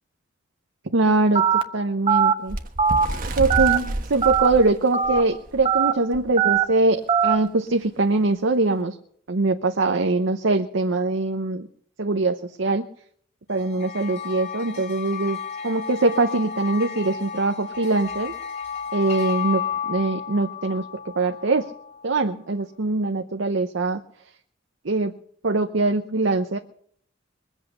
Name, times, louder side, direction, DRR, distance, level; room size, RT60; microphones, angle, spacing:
voice 1, 0.9-2.6 3.4-9.0 9.3-11.7 12.0-12.9 13.5-15.4 15.6-18.3 18.9-21.7 22.0-24.0 24.8-25.1 25.4-26.6, right 3 dB, 70° right, 6 dB, 0.8 m, -22 dB
Telephone, 1.4-1.6 2.1-2.3 2.8-3.1 3.5-3.8 4.2-4.5 4.9-5.2 5.7-5.9 6.4-6.6 7.1-7.4, right 8 dB, 30° right, 1.0 m, -19 dB
Bird, 2.5-5.7 6.1-6.3 6.6-6.8 7.6-7.7, right 1 dB, 45° right, 1.2 m, -30 dB
sound 1, 13.5-22.1, left 7 dB, 35° left, 2.6 m, -33 dB
22.0 x 8.3 x 6.6 m, 0.63 s
head